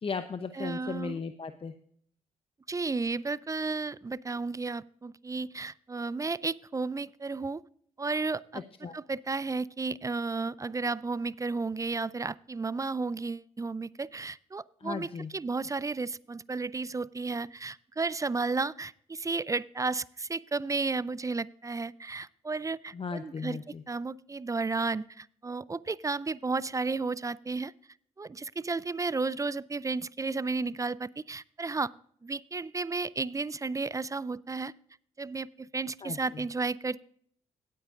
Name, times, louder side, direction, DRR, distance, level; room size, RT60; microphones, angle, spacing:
voice 1, 0.0-1.7 8.8-9.0 14.8-15.3 22.9-23.8 36.0-36.4, left 5 dB, 40° left, 9 dB, 0.8 m, -36 dB
voice 2, 0.5-1.2 2.7-7.6 8.0-8.6 8.9-23.6 23.9-27.7 28.2-31.9 32.2-34.7 35.2-37.1, right 3 dB, 20° right, 21 dB, 0.4 m, -33 dB
17.5 x 8.5 x 2.5 m, 0.63 s
hypercardioid pair, 45°, 15 cm